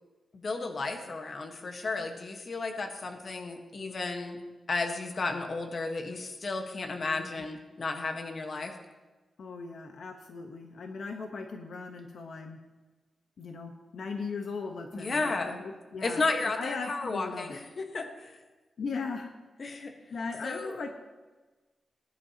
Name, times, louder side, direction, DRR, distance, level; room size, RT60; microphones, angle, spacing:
voice 1, 0.3-4.4 4.7-8.7 14.9-15.6 16.0-18.4 19.6-19.9 20.4-20.8, left 3 dB, 45° left, 4 dB, 1.3 m, -33 dB
voice 2, 9.4-12.6 13.4-17.6 18.8-19.3 20.1-20.9, left 4 dB, 70° left, 4 dB, 1.0 m, -38 dB
19.5 x 10.5 x 2.9 m, 1.2 s
wide cardioid pair, 155°, 0 cm